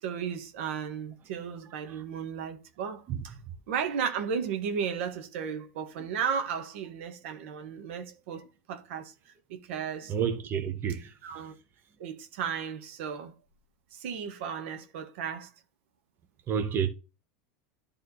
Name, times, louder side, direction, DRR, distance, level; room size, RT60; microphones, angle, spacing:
voice 1, 0.0-3.3 3.7-10.1 11.2-11.5 12.0-13.3 13.9-15.5, right 7 dB, 75° right, 1.4 m, -34 dB
voice 2, 10.1-11.1 16.5-16.9, right 7 dB, 30° right, 1.4 m, -30 dB
11.0 x 3.7 x 4.2 m
supercardioid pair, 120°, 7 cm